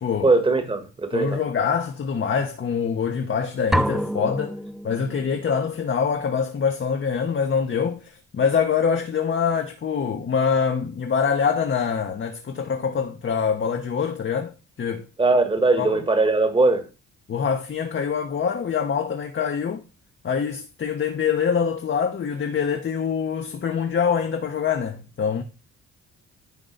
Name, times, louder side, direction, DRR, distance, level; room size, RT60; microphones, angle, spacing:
voice 1, 0.2-1.4 15.2-16.9, right 3 dB, 15° right, 1.4 m, -20 dB
voice 2, 1.1-4.6 4.8-15.0 15.8-16.0 17.3-19.8 20.2-25.4, left 6 dB, 40° left, 1.0 m, -24 dB
sound 1, 3.7-5.5, equal, ahead, 0.4 m, -27 dB
10.5 x 3.8 x 3.9 m
cardioid pair, 90°, 30 cm